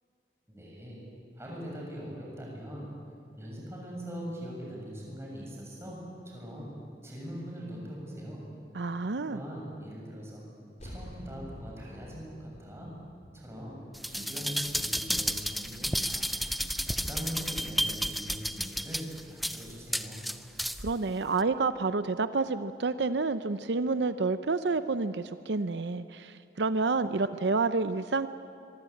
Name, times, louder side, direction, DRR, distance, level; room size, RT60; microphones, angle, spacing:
voice 1, 0.5-1.0 1.3-2.9 3.4-6.7 7.0-8.5 9.2-10.5 10.8-12.9 13.3-13.8 14.1-16.3 16.6-20.3, equal, 15° right, -3 dB, 7.1 m, -41 dB
voice 2, 8.7-9.4 20.8-28.3, right 3 dB, 80° right, 12 dB, 0.7 m, -29 dB
sound 1, 10.8-15.6, equal, 40° left, 3.8 m, -49 dB
sound 2, 13.9-20.9 21.4-21.5, equal, ahead, 0.6 m, -32 dB
24.0 x 23.5 x 8.6 m, 2.5 s
head